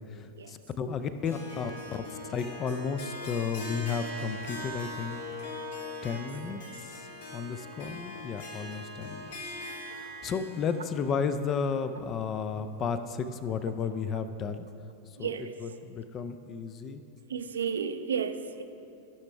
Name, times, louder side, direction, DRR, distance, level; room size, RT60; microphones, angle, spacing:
voice 1, 0.5-1.7 2.3-5.2 6.0-6.6 7.3-9.3 10.2-14.6 15.2-15.3 15.6-17.0, left 6 dB, 30° left, 10 dB, 0.4 m, -33 dB
Harp, 1.2-12.5, left 1 dB, 60° left, 1.4 m, -41 dB
voice 2, 15.2-15.8 17.3-18.6, right 6 dB, 70° right, 9 dB, 0.5 m, -33 dB
14.5 x 5.9 x 3.4 m, 2.6 s
figure-of-eight pair, 90°, 0 cm